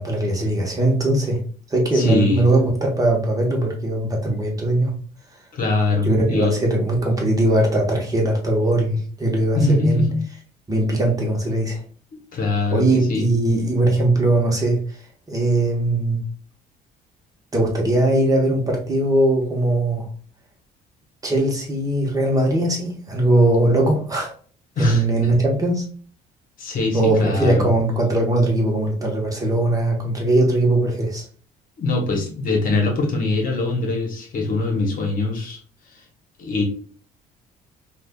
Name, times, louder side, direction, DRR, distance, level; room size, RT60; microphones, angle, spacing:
voice 1, 0.0-1.4 1.7-4.9 6.0-10.1 10.7-11.8 12.7-16.2 17.5-20.1 21.2-24.3 24.8-25.9 26.9-31.3, right 1 dB, 20° right, 0 dB, 1.0 m, -20 dB
voice 2, 1.9-2.4 5.5-6.5 9.5-10.2 12.1-13.3 24.8-25.0 26.6-27.7 31.8-35.6 35.9-36.0 36.4-36.6, left 3 dB, 55° left, 2 dB, 1.0 m, -22 dB
5.0 x 2.4 x 2.3 m, 0.43 s
cardioid pair, 110°, 17 cm